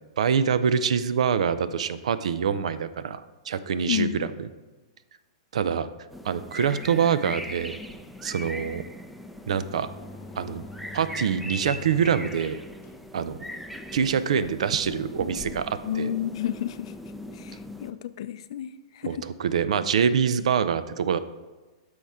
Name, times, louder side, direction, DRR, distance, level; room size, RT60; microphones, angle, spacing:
voice 1, 0.2-4.3 5.5-5.9 6.2-7.8 8.2-8.8 9.5-9.9 10.4-10.6 10.9-12.6 13.1-13.4 13.9-16.1 19.0-21.2, right 7 dB, 80° right, 14 dB, 0.5 m, -25 dB
voice 2, 3.9-4.3 15.8-16.9 17.3-19.3, left 11 dB, 60° left, 13 dB, 0.5 m, -31 dB
sound 1, 6.1-17.9, equal, ahead, 0.4 m, -40 dB
sound 2, 9.7-16.0, left 4 dB, 35° left, 0.9 m, -47 dB
9.8 x 6.3 x 3.6 m, 1.2 s
hypercardioid pair, 150°, 3 cm